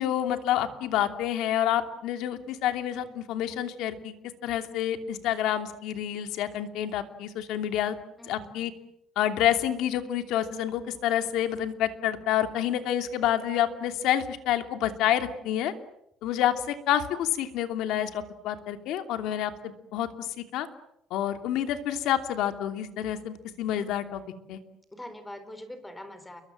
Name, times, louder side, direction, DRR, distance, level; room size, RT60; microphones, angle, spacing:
voice 1, 0.0-4.2 4.4-7.9 8.3-8.7 9.2-15.7 16.2-20.7 21.1-24.2 24.5-24.6, left 11 dB, 70° left, 8 dB, 2.8 m, -28 dB
voice 2, 8.2-8.5 24.9-26.4, left 1 dB, 10° left, 10 dB, 4.0 m, -43 dB
29.5 x 23.0 x 7.7 m, 0.80 s
cardioid pair, 160°, 0 cm